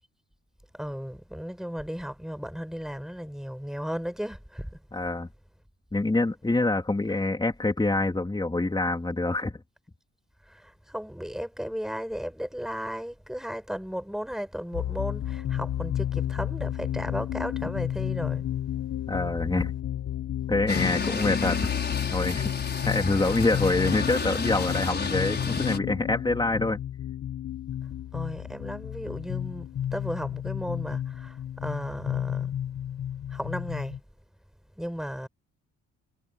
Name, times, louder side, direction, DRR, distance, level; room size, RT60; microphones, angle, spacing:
voice 1, 0.7-4.8 10.4-18.5 28.1-32.5 33.3-34.0 34.8-35.3, equal, ahead, 5.5 m, -35 dB
voice 2, 4.9-5.3 5.9-9.6 19.1-19.7 20.5-21.7 22.1-26.8, left 2 dB, 15° left, 3.4 m, -26 dB
sound 1, 14.7-34.0, left 11 dB, 55° left, 1.1 m, -32 dB
sound 2, 20.7-25.8, left 5 dB, 35° left, 5.9 m, -31 dB
cardioid pair, 90°, 30 cm